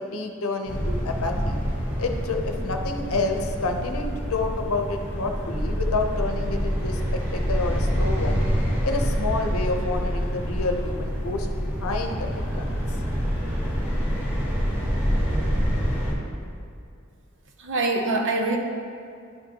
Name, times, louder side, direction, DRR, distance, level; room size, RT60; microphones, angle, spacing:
voice 1, 0.1-1.6 2.0-8.4 8.8-12.6, left 3 dB, 75° left, 4 dB, 0.7 m, -29 dB
sound 1, 0.7-16.1, equal, 10° right, 1.3 m, -26 dB
voice 2, 17.6-18.6, right 2 dB, 60° right, 3 dB, 0.8 m, -24 dB
11.0 x 5.3 x 2.9 m, 2.4 s
head